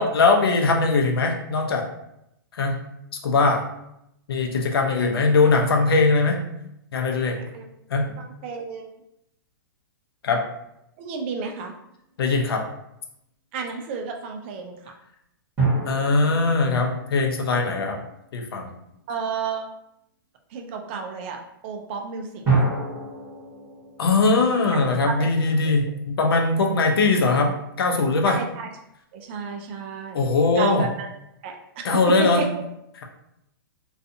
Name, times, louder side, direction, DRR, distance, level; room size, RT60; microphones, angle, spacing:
voice 1, 0.0-1.9 2.6-2.7 3.2-3.6 4.3-6.4 6.9-7.4 7.9-8.1 10.2-10.4 12.2-12.6 15.9-18.0 18.3-18.7 24.0-28.4 30.1-30.8 31.8-32.4, left 3 dB, 80° left, 2 dB, 0.6 m, -20 dB
voice 2, 8.2-8.9 11.0-11.7 13.5-14.9 19.1-19.7 20.5-22.7 25.1-25.3 28.3-28.7 29.1-30.3 30.6-31.1 31.4-31.8 32.2-32.5, right 5 dB, 30° right, 3 dB, 0.3 m, -31 dB
sound 1, 11.9-12.0 15.6-18.4 22.4-25.7, right 3 dB, 15° right, 1.0 m, -28 dB
2.5 x 2.3 x 2.6 m, 0.80 s
hypercardioid pair, 160°, 12 cm